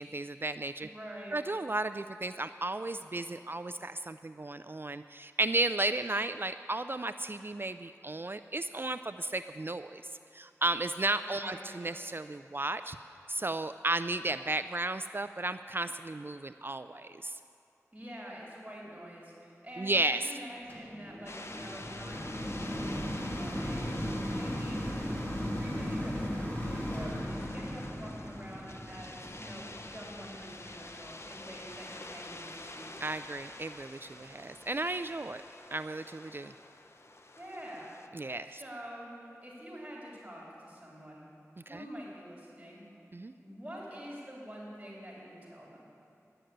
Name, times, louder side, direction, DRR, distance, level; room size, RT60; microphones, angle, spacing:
voice 1, 0.0-0.9 1.3-10.0 10.3-13.0 13.3-17.4 19.8-20.2 24.0-24.2 33.0-35.4 35.7-36.5 38.1-38.6 41.7-41.8 43.1-43.3, right 2 dB, 40° right, 11 dB, 0.3 m, -34 dB
voice 2, 0.8-1.4 11.2-11.6 17.9-24.9 25.6-26.3 26.6-32.9 37.3-37.9 38.4-41.2 41.7-42.8 43.4-45.9, equal, 15° right, -4 dB, 3.3 m, -46 dB
sound 1, 20.7-32.0 32.6-32.7, equal, 30° left, 2.8 m, -37 dB
sound 2, 21.3-38.1, left 2 dB, 50° left, 0.8 m, -48 dB
11.5 x 7.9 x 9.9 m, 2.8 s
wide cardioid pair, 45°, 6 cm